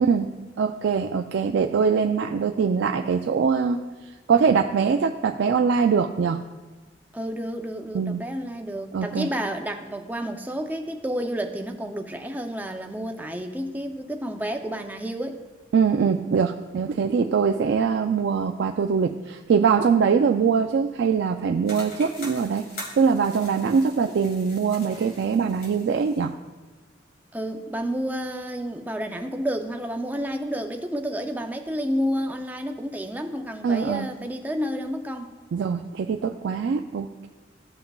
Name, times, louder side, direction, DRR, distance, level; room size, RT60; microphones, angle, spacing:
voice 1, 0.0-3.8 4.3-6.4 7.9-8.2 8.9-9.3 15.7-22.7 23.0-26.3 33.6-34.1 35.5-37.3, right 6 dB, 70° right, 4 dB, 0.3 m, -22 dB
voice 2, 7.1-15.4 27.3-35.3, equal, 10° right, 5 dB, 0.5 m, -30 dB
sound 1, 21.7-26.3, left 1 dB, 55° left, 2.0 m, -42 dB
15.0 x 5.7 x 2.3 m, 1.2 s
head